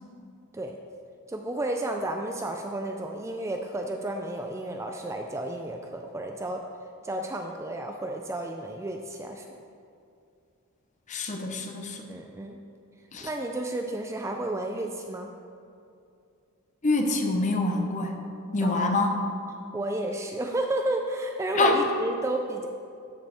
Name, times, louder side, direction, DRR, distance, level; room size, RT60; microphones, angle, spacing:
voice 1, 1.3-6.6 7.0-9.5 12.1-12.6 13.2-15.3 18.6-18.9 19.7-22.7, right 1 dB, 15° right, 3 dB, 0.3 m, -32 dB
voice 2, 11.1-12.1 13.1-13.3 16.8-18.2 18.5-19.1 21.5-21.8, left 2 dB, 35° left, 3 dB, 0.7 m, -25 dB
12.5 x 5.2 x 3.4 m, 2.5 s
head